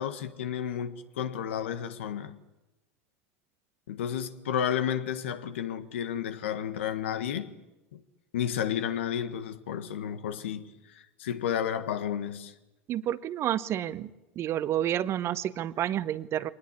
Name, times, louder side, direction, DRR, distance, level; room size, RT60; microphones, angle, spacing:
voice 1, 0.0-2.4 3.9-7.5 7.9-8.0 8.3-12.5, left 9 dB, 75° left, 1.6 m, -32 dB
voice 2, 12.9-14.1 14.4-16.5, right 11 dB, 40° right, 1.0 m, -29 dB
23.0 x 19.5 x 9.8 m
hypercardioid pair, 90°, 7 cm